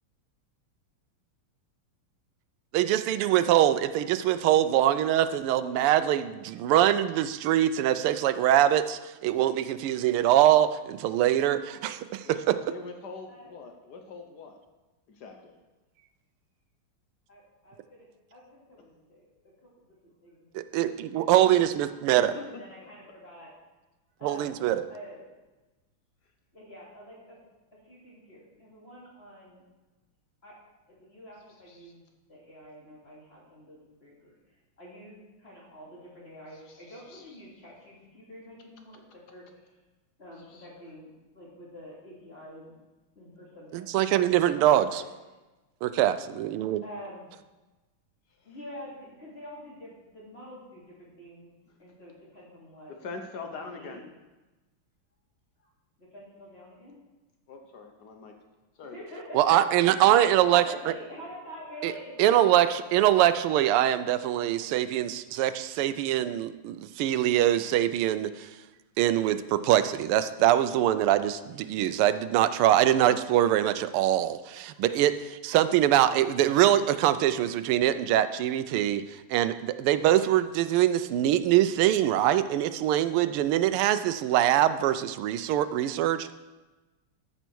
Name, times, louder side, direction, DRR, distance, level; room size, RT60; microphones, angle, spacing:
voice 1, 2.7-12.6 20.5-22.3 24.2-24.8 43.7-45.0 45.8-46.8 59.3-60.9 61.8-61.9 62.2-62.7 62.9-68.6 69.0-86.3, right 12 dB, 85° right, 12 dB, 1.5 m, -23 dB
voice 2, 12.7-14.6 15.1-15.6 21.3-21.6 22.2-22.5 22.8-22.9 31.7-31.9 36.7-37.4 40.5-40.7 53.0-54.0 57.5-58.3 58.8-59.0, left 4 dB, 60° left, 5 dB, 1.2 m, -43 dB
voice 3, 17.3-19.3 20.0-20.5 20.7-21.3 21.8-23.5 24.2-24.5 24.9-25.3 26.5-27.4 27.8-29.6 30.4-30.6 30.8-32.0 32.3-39.8 40.2-42.7 43.1-43.9 44.2-45.0 46.8-47.3 48.4-51.5 51.8-52.9 53.6-54.1 55.6-55.7 56.0-57.0 58.9-59.4 60.2-62.8 63.1-63.5, equal, 30° left, -5 dB, 2.5 m, -47 dB
13.5 x 5.5 x 4.5 m, 1.1 s
omnidirectional pair, 2.4 m